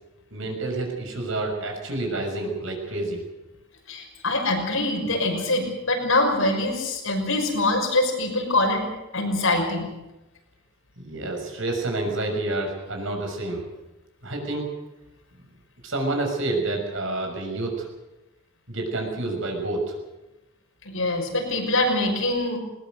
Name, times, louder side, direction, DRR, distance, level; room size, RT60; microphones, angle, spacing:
voice 1, 0.3-3.2 11.0-13.7 14.2-14.7 15.8-17.9 18.7-19.8, right 2 dB, 70° right, 2 dB, 6.4 m, -28 dB
voice 2, 3.9-8.8 9.1-9.9 20.8-22.6, left 2 dB, 85° left, 2 dB, 6.0 m, -24 dB
20.5 x 19.5 x 8.0 m, 0.99 s
head